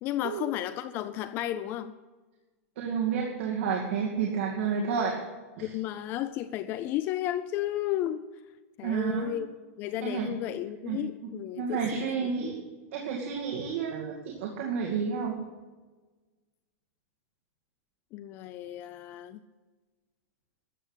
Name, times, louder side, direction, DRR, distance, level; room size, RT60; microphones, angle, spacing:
voice 1, 0.0-1.9 5.6-8.2 8.8-9.5 9.8-12.5 18.1-19.4, left 13 dB, 25° left, 14 dB, 0.4 m, -33 dB
voice 2, 2.8-5.1 5.6-5.7 8.8-9.4 10.0-10.3 10.9-15.4, right 6 dB, 55° right, -1 dB, 2.3 m, -31 dB
13.5 x 8.1 x 8.1 m, 1.3 s
supercardioid pair, 175°, 8 cm